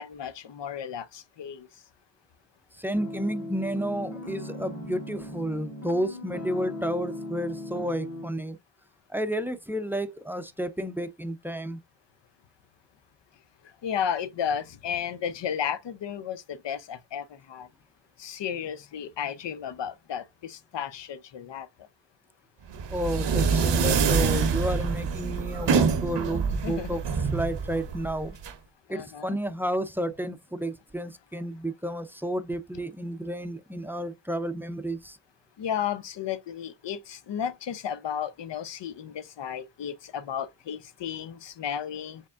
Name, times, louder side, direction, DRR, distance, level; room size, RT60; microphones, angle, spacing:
voice 1, 0.0-1.7 13.8-17.7 18.2-21.7 26.6-27.0 28.9-29.4 35.6-42.2, left 8 dB, 75° left, 0.7 m, -33 dB
voice 2, 2.8-8.6 9.1-11.8 22.9-27.0 27.3-28.4 28.9-35.2, right 1 dB, 5° right, 0.4 m, -31 dB
sound 1, 2.9-8.3, left 1 dB, 40° left, 1.5 m, -38 dB
sound 2, 22.7-28.5, right 5 dB, 75° right, 0.8 m, -26 dB
4.7 x 3.5 x 2.4 m
wide cardioid pair, 85°, 43 cm